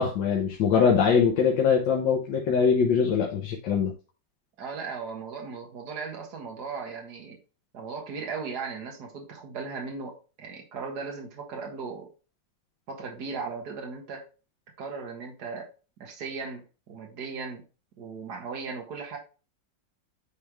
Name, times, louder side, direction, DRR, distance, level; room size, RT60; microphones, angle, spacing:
voice 1, 0.0-3.9, left 6 dB, 90° left, 0 dB, 1.7 m, -22 dB
voice 2, 4.6-7.4 7.7-12.1 12.9-14.3 14.8-15.7 16.0-17.6 18.0-19.2, right 5 dB, 60° right, 1 dB, 2.0 m, -37 dB
9.4 x 3.5 x 3.3 m, 0.33 s
omnidirectional pair, 2.0 m